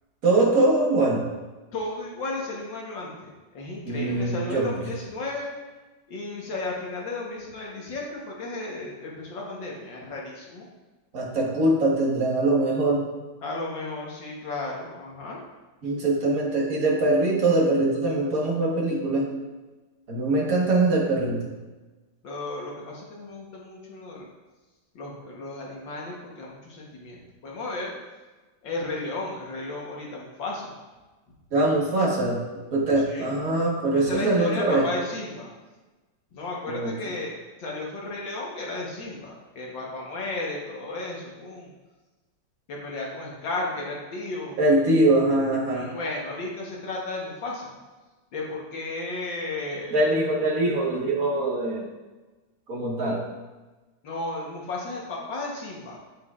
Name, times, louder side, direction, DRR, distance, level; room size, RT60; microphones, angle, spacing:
voice 1, 0.2-1.3 3.9-4.9 11.1-13.1 15.8-19.4 20.1-21.5 31.5-34.9 36.7-36.9 44.6-45.9 49.9-51.9 52.7-53.2, right 2 dB, 45° right, -4 dB, 1.9 m, -23 dB
voice 2, 1.7-5.5 6.1-10.7 13.4-15.4 22.2-24.3 25.0-27.9 28.6-30.7 33.0-33.3 33.9-35.5 36.3-37.3 37.6-41.7 42.7-44.6 45.7-47.7 48.3-50.1 54.0-56.0, left 2 dB, 70° left, -3 dB, 2.0 m, -34 dB
8.2 x 7.9 x 2.5 m, 1.2 s
omnidirectional pair, 2.2 m